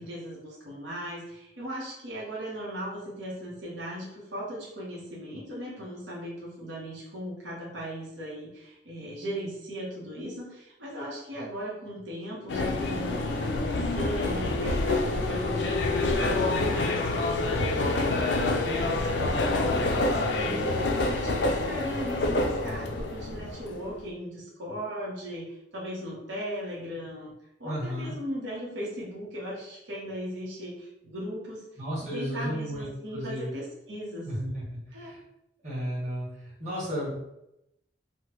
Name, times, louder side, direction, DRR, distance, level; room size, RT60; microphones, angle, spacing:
voice 1, 0.0-27.3 27.6-31.6 32.0-34.3 34.9-35.2, equal, 90° right, -6 dB, 0.9 m, -38 dB
sound 1, 12.5-23.9, left 2 dB, 80° left, 0.4 m, -27 dB
voice 2, 27.6-28.1 31.8-33.5 34.2-35.2 35.6-37.2, equal, 40° right, -8 dB, 1.4 m, -33 dB
3.3 x 2.1 x 2.9 m, 0.84 s
head